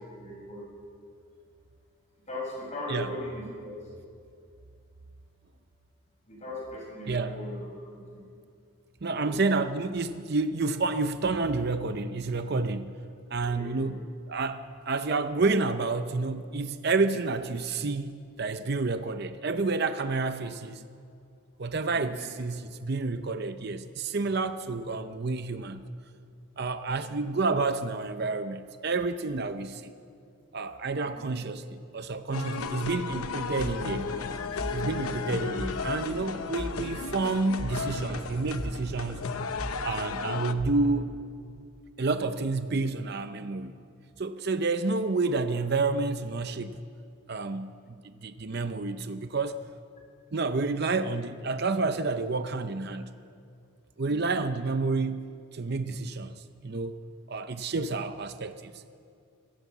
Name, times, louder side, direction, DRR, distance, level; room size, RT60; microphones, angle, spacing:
voice 1, 0.2-0.6 2.3-3.8 6.3-7.7 8.1-8.2 9.1-9.3 13.4-13.9 21.9-22.4 24.6-24.7 31.0-31.5 35.0-35.2 54.0-54.2, left 1 dB, 30° left, -2 dB, 6.3 m, -39 dB
voice 2, 9.0-13.0 13.3-14.0 14.3-20.9 21.6-26.0 26.6-29.9 30.5-31.6 31.9-34.1 34.7-39.2 39.8-41.1 42.0-43.7 44.2-46.8 47.3-49.6 50.3-53.1 54.0-57.0 57.3-58.7, right 3 dB, 45° right, 10 dB, 0.6 m, -29 dB
sound 1, 32.3-40.5, left 4 dB, 85° left, 0.9 m, -34 dB
sound 2, 33.6-41.2, equal, 5° left, 3.7 m, -40 dB
22.0 x 16.5 x 7.3 m, 2.3 s
head